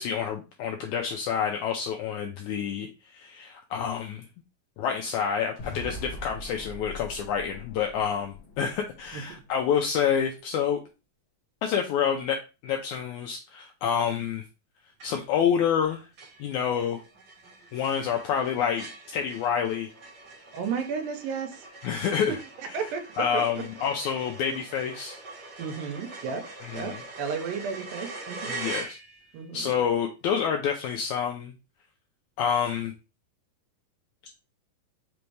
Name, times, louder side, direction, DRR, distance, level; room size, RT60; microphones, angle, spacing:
voice 1, 0.0-4.2 4.8-10.8 11.6-14.4 15.0-16.1 16.4-17.0 17.7-19.9 21.8-22.4 23.2-25.2 26.6-27.0 28.5-29.0 29.5-31.5 32.4-32.9, left 7 dB, 85° left, 1.7 m, -28 dB
sound 1, 5.6-9.7, left 2 dB, 55° left, 1.4 m, -42 dB
sound 2, 15.0-15.4 15.8-15.9 16.2-29.4, right 3 dB, 45° right, 1.4 m, -43 dB
voice 2, 20.5-21.6 22.0-22.1 22.7-23.7 25.6-26.5 26.7-28.6 29.3-29.7, right 6 dB, 90° right, 2.6 m, -33 dB
5.8 x 2.6 x 3.2 m
omnidirectional pair, 4.0 m